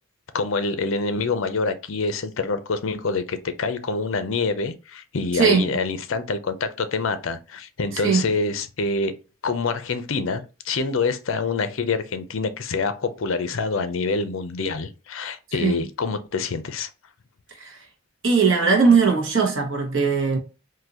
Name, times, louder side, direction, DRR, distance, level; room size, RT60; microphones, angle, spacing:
voice 1, 0.3-9.1 9.4-16.9, left 4 dB, 65° left, 0.5 m, -26 dB
voice 2, 5.3-5.7 8.0-8.2 15.6-15.8 17.6-17.8 18.2-20.4, right 5 dB, 60° right, 1.1 m, -19 dB
3.9 x 2.6 x 2.8 m
head